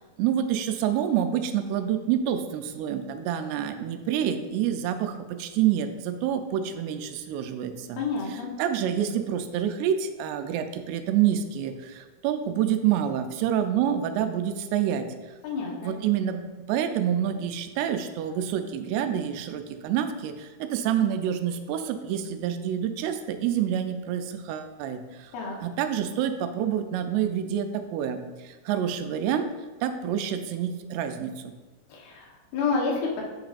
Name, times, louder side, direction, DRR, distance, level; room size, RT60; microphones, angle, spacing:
voice 1, 0.2-8.0 8.3-15.1 15.8-25.3 25.6-29.5 29.8-31.5, right 9 dB, 85° right, 8 dB, 2.6 m, -27 dB
voice 2, 8.0-8.5 15.4-16.0 25.3-25.6 31.9-33.2, left 4 dB, 75° left, -2 dB, 3.0 m, -29 dB
8.1 x 6.1 x 2.5 m, 1.3 s
omnidirectional pair, 4.6 m